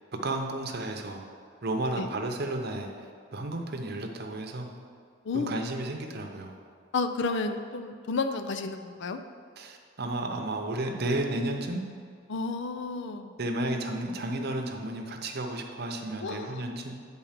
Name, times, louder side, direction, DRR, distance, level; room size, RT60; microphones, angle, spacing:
voice 1, 0.2-1.3 1.6-2.9 3.3-4.7 5.3-6.5 9.6-11.8 13.4-16.9, right 1 dB, 55° right, 3 dB, 0.8 m, -32 dB
voice 2, 5.2-5.6 6.9-9.2 12.3-13.3 16.2-16.7, left 4 dB, 65° left, 8 dB, 0.5 m, -31 dB
8.8 x 4.0 x 5.8 m, 2.2 s
head